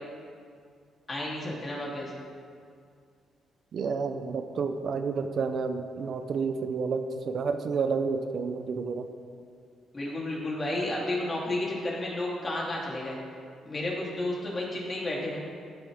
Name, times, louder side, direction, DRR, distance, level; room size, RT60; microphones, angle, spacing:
voice 1, 1.1-2.1 9.9-13.2 13.6-15.4, left 1 dB, 30° left, -4 dB, 3.3 m, -32 dB
voice 2, 3.7-9.1, right 5 dB, 60° right, 7 dB, 0.7 m, -30 dB
14.5 x 8.8 x 3.6 m, 2.2 s
cardioid pair, 90°, 0 cm